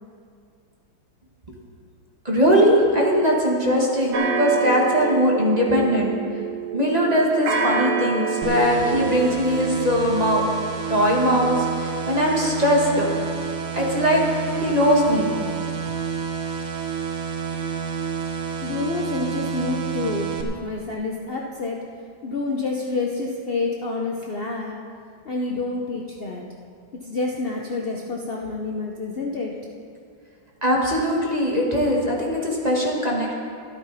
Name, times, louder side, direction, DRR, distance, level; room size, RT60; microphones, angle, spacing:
voice 1, 2.2-6.1 6.7-10.4 10.9-13.1 13.7-14.2 14.6-15.3 30.6-33.3, equal, 20° right, -3 dB, 1.6 m, -20 dB
sound 1, 4.1-9.3, right 5 dB, 55° right, 1.4 m, -27 dB
sound 2, 8.4-20.4, right 7 dB, 90° right, 1.8 m, -29 dB
voice 2, 18.6-21.8 22.2-24.7 25.3-26.4 27.1-29.5, left 3 dB, 70° left, -1 dB, 0.5 m, -28 dB
13.0 x 12.0 x 4.1 m, 2.3 s
omnidirectional pair, 2.2 m